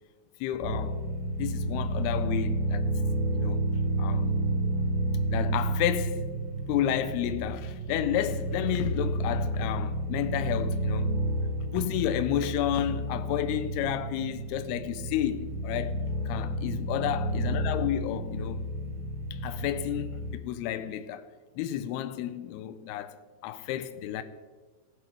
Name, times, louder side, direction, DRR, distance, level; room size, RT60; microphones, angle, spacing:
voice 1, 0.4-1.0 1.4-2.8 3.4-3.7 4.0-4.4 5.3-6.2 6.7-11.1 11.7-18.7 19.3-21.3 21.6-23.2 23.4-24.2, left 11 dB, 90° left, 2.2 m, -31 dB
sound 1, 0.6-20.4, right 1 dB, 70° right, 2.4 m, -31 dB
17.5 x 7.4 x 3.3 m
omnidirectional pair, 5.1 m